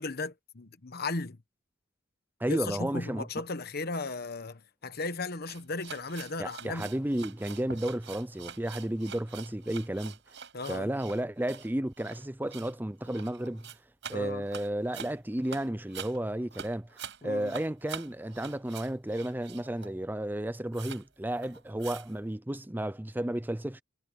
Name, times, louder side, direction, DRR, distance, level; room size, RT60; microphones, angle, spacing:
voice 1, 0.0-1.4 2.5-6.9 10.5-10.9 14.1-14.4 17.2-17.5, left 3 dB, 50° left, 1.2 m, -36 dB
voice 2, 2.4-3.3 6.4-10.2 10.7-13.7 14.1-16.9 17.2-23.8, right 1 dB, 10° right, 0.6 m, -32 dB
sound 1, 5.5-20.0 20.3-20.4 20.7-21.1 21.3-22.2, right 7 dB, 60° right, 6.8 m, -46 dB
head